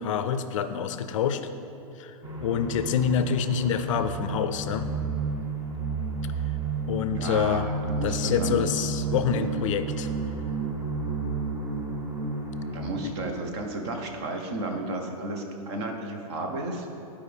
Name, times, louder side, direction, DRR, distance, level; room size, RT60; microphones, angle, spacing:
voice 1, 0.0-1.4 2.0-4.9 6.9-7.7 8.0-10.1 13.0-13.1, left 7 dB, 60° left, 11 dB, 0.4 m, -27 dB
sound 1, 2.2-12.9, right 3 dB, 20° right, 0.9 m, -31 dB
voice 2, 7.1-8.6 12.7-16.9, right 2 dB, 45° right, 3 dB, 1.1 m, -33 dB
11.5 x 4.9 x 3.5 m, 2.8 s
hypercardioid pair, 135°, 19 cm